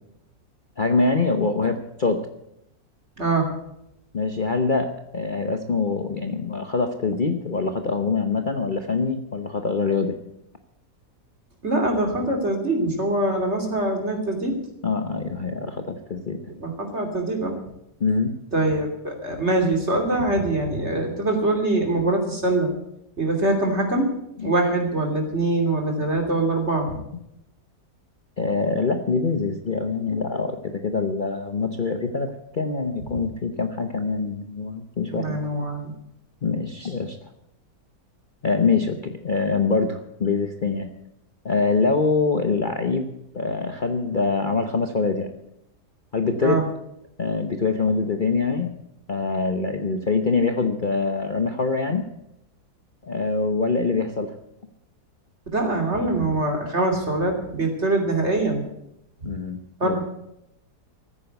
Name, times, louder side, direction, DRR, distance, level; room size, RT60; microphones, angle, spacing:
voice 1, 0.8-2.3 4.1-10.2 14.8-16.4 18.0-18.4 24.4-24.5 28.4-35.4 36.4-37.2 38.4-40.9 41.4-43.1 43.3-45.3 46.1-46.6 47.2-48.7 49.1-52.0 53.0-54.3 59.2-60.0, left 4 dB, 35° left, 6 dB, 1.0 m, -24 dB
voice 2, 3.2-3.5 11.6-14.6 16.6-17.6 18.5-22.7 23.2-24.1 24.4-27.0 35.1-35.9 36.8-36.9 46.4-46.6 55.5-58.6 59.8-60.0, right 2 dB, 40° right, 2 dB, 3.2 m, -23 dB
15.0 x 9.6 x 8.0 m, 0.81 s
omnidirectional pair, 1.7 m